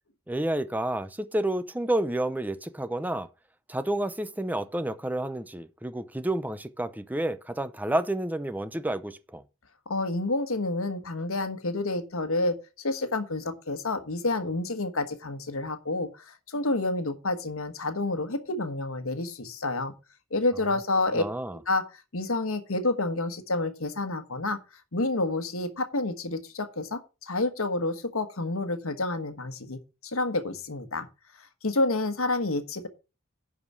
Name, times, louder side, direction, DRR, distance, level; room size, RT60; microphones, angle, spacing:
voice 1, 0.3-3.3 3.7-9.4 21.1-21.6, right 1 dB, 10° right, 0.5 m, -30 dB
voice 2, 9.9-19.9 20.3-21.2 21.7-24.6 24.9-31.1 31.4-32.9, left 2 dB, 70° left, 1.3 m, -29 dB
11.0 x 5.0 x 6.1 m
head